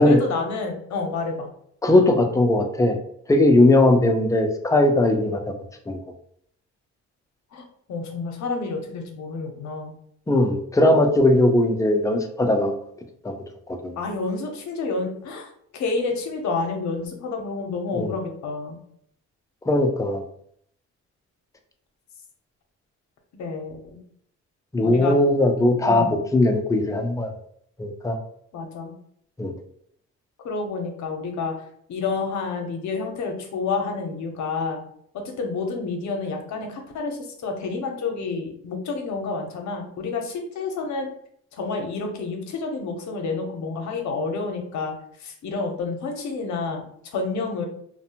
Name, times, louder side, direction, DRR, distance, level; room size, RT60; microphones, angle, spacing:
voice 1, 0.0-1.5 7.5-10.0 14.0-18.8 23.3-23.8 24.8-25.2 25.8-26.1 28.5-28.9 30.4-31.5 31.9-34.8 35.1-41.1 41.5-44.9 45.2-47.7, left 4 dB, 65° left, 3 dB, 0.7 m, -29 dB
voice 2, 1.8-3.0 3.3-5.4 5.9-6.0 10.3-12.7 13.2-13.3 13.7-14.0 18.0-18.1 19.7-20.2 24.7-27.3 27.8-28.2 29.4-29.5, left 1 dB, 10° left, 4 dB, 0.4 m, -19 dB
2.5 x 2.1 x 2.8 m, 0.66 s
cardioid pair, 90°, 30 cm